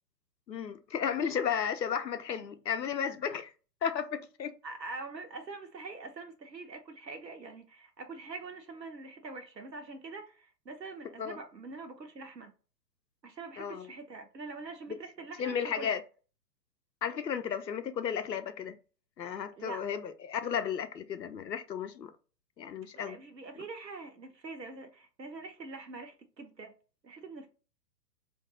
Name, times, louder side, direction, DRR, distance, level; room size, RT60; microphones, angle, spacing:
voice 1, 0.5-3.5 3.8-4.5 11.2-11.4 13.6-13.9 14.9-15.0 15.4-16.0 17.0-18.8 19.2-22.1 22.6-23.2, left 7 dB, 85° left, 0.6 m, -34 dB
voice 2, 4.6-12.5 13.2-16.0 19.6-19.9 22.9-26.7 27.0-27.5, right 3 dB, 85° right, 0.8 m, -44 dB
2.5 x 2.3 x 3.8 m
figure-of-eight pair, 115°, 49 cm